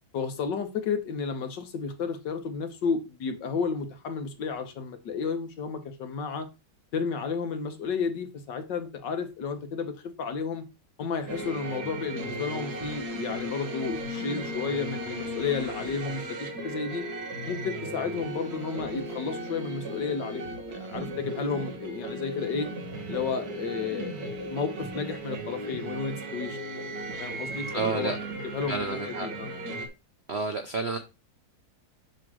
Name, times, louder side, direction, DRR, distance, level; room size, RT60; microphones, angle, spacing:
voice 1, 0.1-6.5 6.9-10.6 11.0-17.0 17.5-22.7 23.1-26.6 27.2-28.2 28.4-29.5, left 5 dB, 65° left, 1.8 m, -32 dB
sound 1, 11.3-29.9, right 1 dB, 55° right, 1.7 m, -36 dB
voice 2, 27.7-28.2 28.7-29.3 30.3-31.0, right 4 dB, 75° right, 0.6 m, -30 dB
7.5 x 3.2 x 6.1 m
omnidirectional pair, 2.1 m